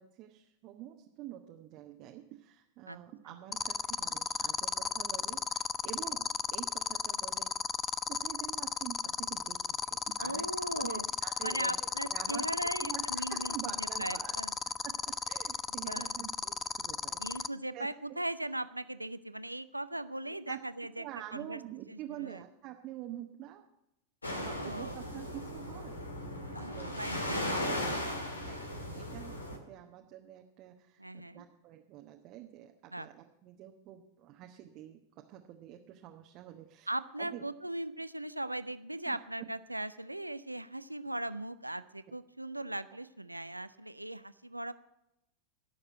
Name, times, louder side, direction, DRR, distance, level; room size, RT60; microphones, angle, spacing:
voice 1, 0.0-7.5 8.1-10.4 10.7-12.4 12.8-14.3 14.8-17.4 17.7-17.9 20.5-20.6 21.0-23.7 24.4-26.0 26.7-27.1 27.9-28.0 28.4-36.9 37.2-37.5 39.1-39.5, right 13 dB, 40° right, 3 dB, 1.0 m, -47 dB
sound 1, 3.5-17.5, left 6 dB, 20° left, 0.4 m, -33 dB
voice 2, 10.2-11.0 11.4-14.5 15.9-16.2 17.2-21.0 21.3-21.6 21.9-22.4 24.3-25.0 26.5-28.1 31.0-31.4 32.9-33.1 36.9-44.7, right 1 dB, 85° right, 14 dB, 0.4 m, -39 dB
sound 2, 24.2-29.6, left 1 dB, 80° left, 1.9 m, -37 dB
16.5 x 6.7 x 7.5 m, 0.87 s
figure-of-eight pair, 90°, 0 cm